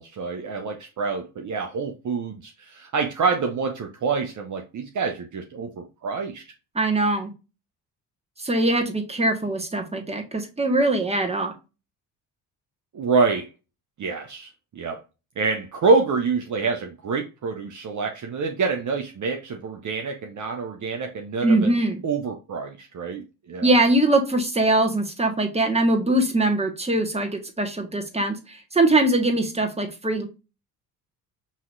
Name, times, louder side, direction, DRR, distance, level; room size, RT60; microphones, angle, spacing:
voice 1, 0.0-6.4 12.9-13.5 14.0-15.0 15.4-21.7 22.0-23.8, right 4 dB, 40° right, 0.9 m, -26 dB
voice 2, 6.7-7.3 8.4-11.5 21.4-22.0 23.6-30.2, right 2 dB, 15° right, 1.6 m, -22 dB
5.6 x 3.1 x 2.6 m
hypercardioid pair, 55°, 44 cm